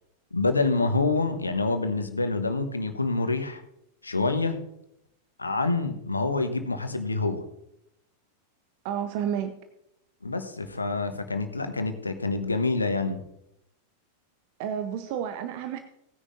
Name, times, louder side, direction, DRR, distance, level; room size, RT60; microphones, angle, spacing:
voice 1, 0.3-3.6 4.0-4.6 5.4-7.4 10.2-13.2, left 3 dB, 80° left, 8 dB, 1.1 m, -27 dB
voice 2, 8.8-9.5 14.6-15.8, right 9 dB, 50° right, 9 dB, 0.7 m, -30 dB
18.0 x 9.9 x 2.6 m, 0.81 s
figure-of-eight pair, 90°, 0 cm